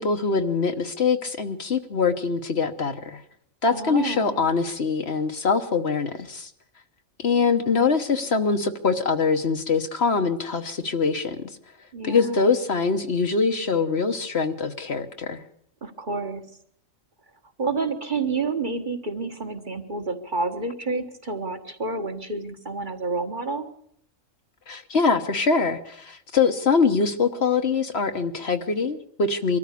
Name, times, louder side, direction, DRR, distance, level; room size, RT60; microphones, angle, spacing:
voice 1, 0.0-3.2 3.6-6.5 7.2-11.4 12.0-15.4 24.7-29.6, left 5 dB, 55° left, 7 dB, 1.4 m, -23 dB
voice 2, 3.7-4.4 11.9-12.5 15.8-16.4 17.6-23.7, right 3 dB, 40° right, 5 dB, 1.7 m, -29 dB
23.5 x 13.5 x 8.3 m, 0.67 s
omnidirectional pair, 1.4 m